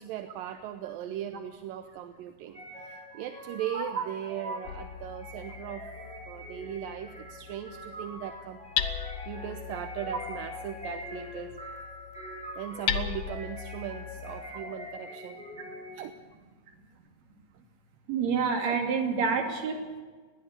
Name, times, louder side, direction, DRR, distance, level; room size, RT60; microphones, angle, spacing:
voice 1, 0.0-5.9 6.3-8.6 9.3-11.6 12.6-15.4 15.9-16.2 18.6-18.8, right 11 dB, 75° right, 8 dB, 2.3 m, -38 dB
sound 1, 2.5-16.2, left 1 dB, ahead, 3.9 m, -44 dB
voice 2, 3.7-4.0 4.4-4.6 18.1-20.0, right 5 dB, 45° right, 2 dB, 3.6 m, -28 dB
Hammer, 4.7-14.4, left 9 dB, 80° left, 1.4 m, -38 dB
21.0 x 15.5 x 8.2 m, 1.4 s
omnidirectional pair, 4.6 m